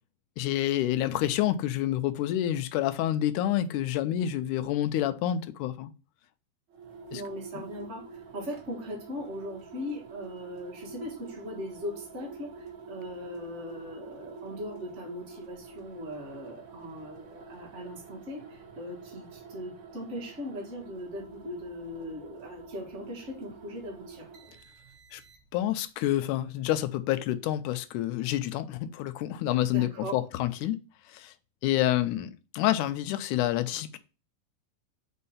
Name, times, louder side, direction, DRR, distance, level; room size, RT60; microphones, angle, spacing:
voice 1, 0.4-5.9 7.1-7.2 7.6-7.7 25.1-25.2 25.5-30.8 31.1-31.3 31.6-34.0, left 13 dB, 80° left, 2.0 m, -28 dB
sound 1, 6.7-25.7, right 4 dB, 70° right, 1.0 m, -47 dB
voice 2, 7.1-24.3 29.7-30.2, left 1 dB, 40° right, 1.0 m, -39 dB
4.6 x 4.3 x 5.5 m
omnidirectional pair, 3.7 m